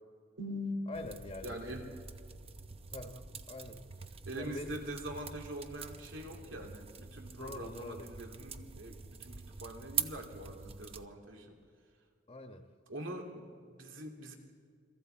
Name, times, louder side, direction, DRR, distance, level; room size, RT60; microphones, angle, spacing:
voice 1, 0.4-0.8 1.4-1.9 3.1-3.2 4.2-11.6 12.9-14.4, equal, 80° right, 2 dB, 2.6 m, -43 dB
voice 2, 0.9-1.6 2.9-3.1 3.5-3.8 4.3-4.8 7.4-8.1 12.3-12.6, left 2 dB, 30° left, 5 dB, 1.3 m, -44 dB
sound 1, 0.9-11.1, right 6 dB, 30° right, 0.8 m, -44 dB
29.5 x 23.5 x 4.5 m, 2.1 s
head